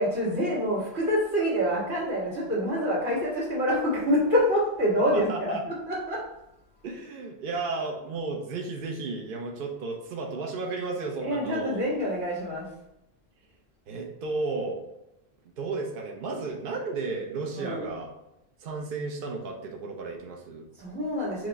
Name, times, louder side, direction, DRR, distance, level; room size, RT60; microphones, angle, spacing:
voice 1, 0.0-6.3 11.2-12.7 17.6-17.9 20.7-21.5, equal, 90° right, -7 dB, 1.9 m, -26 dB
voice 2, 5.1-5.6 6.8-11.8 13.9-14.8 15.6-18.1 18.6-20.7, right 3 dB, 60° right, 0 dB, 0.8 m, -33 dB
4.5 x 2.5 x 4.0 m, 0.88 s
omnidirectional pair, 1.1 m